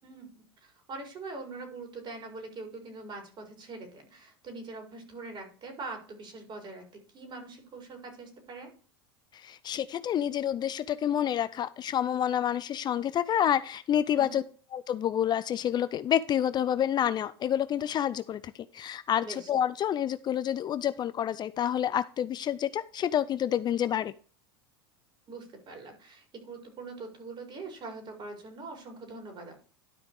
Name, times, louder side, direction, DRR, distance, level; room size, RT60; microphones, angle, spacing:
voice 1, 0.0-8.7 14.1-14.4 19.2-19.5 25.3-29.6, right 3 dB, 40° right, 3 dB, 5.0 m, -43 dB
voice 2, 9.3-14.4 14.7-24.1, left 10 dB, 35° left, 15 dB, 0.5 m, -28 dB
12.5 x 5.2 x 4.7 m, 0.40 s
hypercardioid pair, 95°, 13 cm